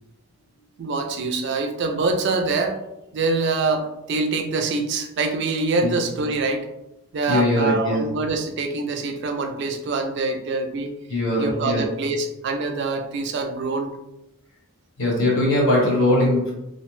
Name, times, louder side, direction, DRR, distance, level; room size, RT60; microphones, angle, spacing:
voice 1, 0.8-2.8 3.1-6.7 7.1-10.9 11.4-13.9, right 3 dB, 50° right, 5 dB, 0.3 m, -25 dB
voice 2, 7.3-8.0 11.1-11.8 15.0-16.5, left 1 dB, 60° left, -4 dB, 1.0 m, -20 dB
2.5 x 2.1 x 3.0 m, 0.92 s
head